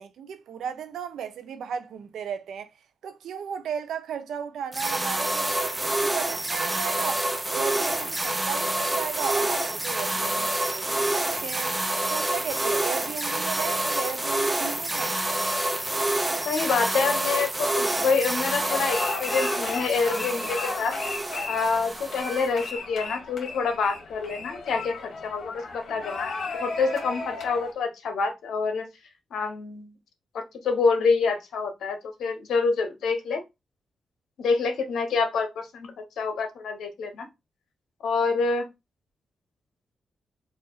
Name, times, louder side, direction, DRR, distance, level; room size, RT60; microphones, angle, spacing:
voice 1, 0.0-2.7 3.0-11.8 12.1-15.2, right 8 dB, 90° right, 0.7 m, -35 dB
sound 1, 4.7-22.7, right 1 dB, 15° right, 0.7 m, -28 dB
voice 2, 16.4-21.0 21.5-26.3 26.6-28.9 29.3-29.9 30.3-33.4 34.4-37.3 38.0-38.7, left 4 dB, 85° left, 1.0 m, -27 dB
sound 2, 18.4-27.7, left 3 dB, 70° left, 1.7 m, -35 dB
4.0 x 2.6 x 4.0 m
cardioid pair, 80°, 0 cm